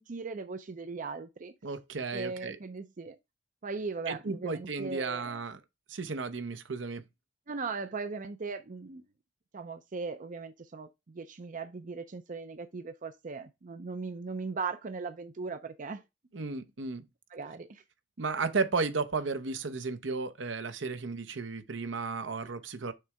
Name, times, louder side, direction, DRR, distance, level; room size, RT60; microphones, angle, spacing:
voice 1, 0.0-1.5 2.1-3.2 3.6-5.4 7.5-9.0 9.5-16.0 17.3-17.8 22.4-22.5, right 4 dB, 45° right, 0.5 m, -38 dB
voice 2, 1.6-2.6 4.1-5.6 5.9-7.0 16.3-17.0 18.2-22.9, right 4 dB, 75° right, 0.8 m, -34 dB
6.5 x 3.3 x 4.7 m
head